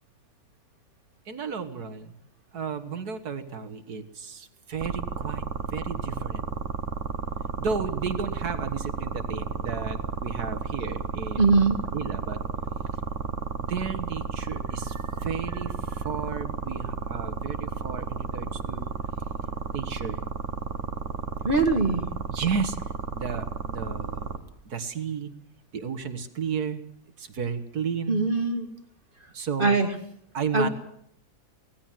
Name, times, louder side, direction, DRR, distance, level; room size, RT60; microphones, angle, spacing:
voice 1, 1.3-2.2 2.5-6.4 7.6-11.5 11.9-12.4 13.6-18.9 19.7-20.2 22.3-22.8 23.1-24.3 24.7-25.3 25.7-26.8 27.2-28.3 29.3-29.8 30.3-30.7, right 6 dB, 75° right, 9 dB, 2.1 m, -33 dB
sound 1, 4.8-24.4, right 5 dB, 50° right, 1.8 m, -32 dB
voice 2, 11.4-11.9 21.4-22.1 28.1-28.7 29.6-29.9 30.5-30.7, right 3 dB, 35° right, 6 dB, 2.2 m, -22 dB
24.0 x 18.0 x 7.6 m, 0.71 s
omnidirectional pair, 1.6 m